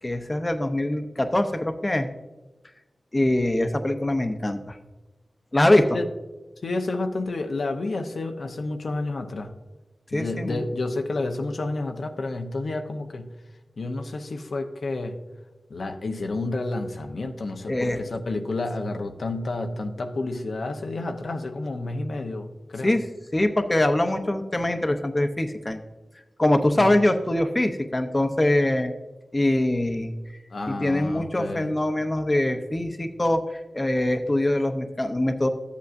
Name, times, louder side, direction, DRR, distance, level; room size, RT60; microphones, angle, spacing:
voice 1, 0.0-2.1 3.1-4.8 5.5-6.0 10.1-10.7 17.7-18.0 22.8-23.1 23.3-25.8 26.4-28.9 29.3-30.1 30.7-35.5, left 1 dB, 25° left, 7 dB, 0.7 m, -23 dB
voice 2, 6.6-9.5 10.1-13.3 13.8-15.2 15.7-23.0 26.8-26.9 30.5-31.7, left 2 dB, 70° left, 4 dB, 0.7 m, -30 dB
12.5 x 8.3 x 2.6 m, 1.1 s
wide cardioid pair, 70°, 0 cm